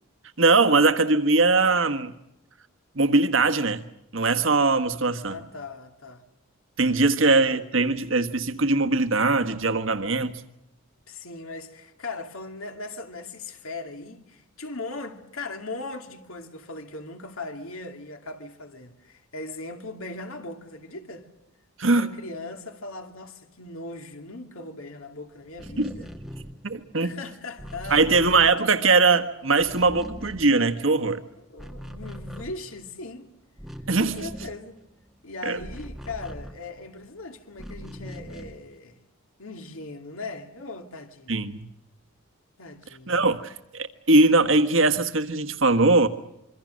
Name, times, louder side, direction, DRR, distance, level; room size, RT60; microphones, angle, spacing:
voice 1, 0.4-2.1 2.9-3.8 4.1-5.4 6.8-10.4 21.8-22.1 25.8-25.9 26.6-27.2 27.9-31.2 33.9-34.3 35.4-35.6 41.3-41.7 43.1-46.1, right 3 dB, 60° right, 1.5 m, -21 dB
voice 2, 5.2-6.2 7.0-7.2 11.1-21.3 21.8-26.1 27.0-28.1 31.5-33.3 34.0-34.8 35.2-39.0 39.4-41.4 42.6-43.3, left 3 dB, 75° left, 2.5 m, -39 dB
sound 1, 25.5-29.2 29.4-31.1 31.4-37.1 37.5-38.8, equal, ahead, 1.0 m, -41 dB
26.5 x 24.0 x 6.5 m
head